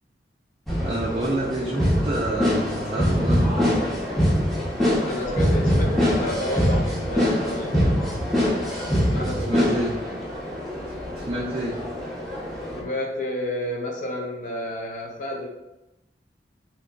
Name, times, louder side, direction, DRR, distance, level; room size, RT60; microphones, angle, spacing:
sound 1, 0.7-12.8, equal, ahead, 0.7 m, -24 dB
voice 1, 0.8-3.7 9.0-10.0 11.1-11.8, right 1 dB, 30° right, -4 dB, 0.4 m, -29 dB
voice 2, 4.8-8.1 9.0-9.8 12.7-15.5, left 1 dB, 45° left, -1 dB, 0.5 m, -31 dB
3.7 x 2.8 x 2.2 m, 0.93 s
head